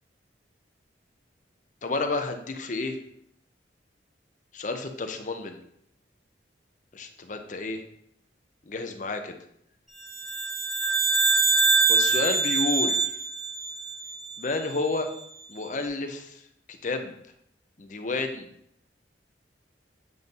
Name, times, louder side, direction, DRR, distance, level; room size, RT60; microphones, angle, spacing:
voice 1, 1.8-3.0 4.5-5.6 6.9-7.8 8.7-9.4 11.1-11.3 11.9-13.0 14.4-15.1 15.5-16.4 16.7-17.1 17.8-18.5, left 3 dB, 45° left, 6 dB, 0.7 m, -30 dB
sound 1, 10.1-14.6, right 4 dB, ahead, 0.8 m, -24 dB
7.8 x 2.7 x 5.3 m, 0.73 s
head